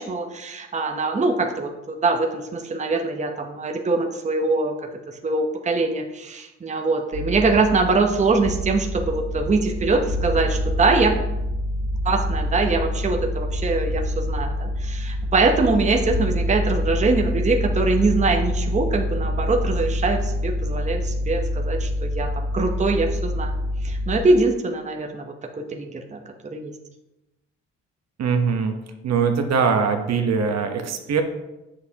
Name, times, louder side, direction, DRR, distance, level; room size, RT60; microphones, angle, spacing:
voice 1, 0.0-4.8 5.2-11.2 12.0-23.5 23.8-26.2 26.5-26.7, right 3 dB, 25° right, 3 dB, 0.8 m, -23 dB
sound 1, 7.1-24.2, left 1 dB, 90° right, 2.0 m, -26 dB
voice 2, 28.2-28.8 29.0-31.2, right 5 dB, 60° right, 5 dB, 0.9 m, -22 dB
7.6 x 6.5 x 2.8 m, 0.99 s
cardioid pair, 90°, 30 cm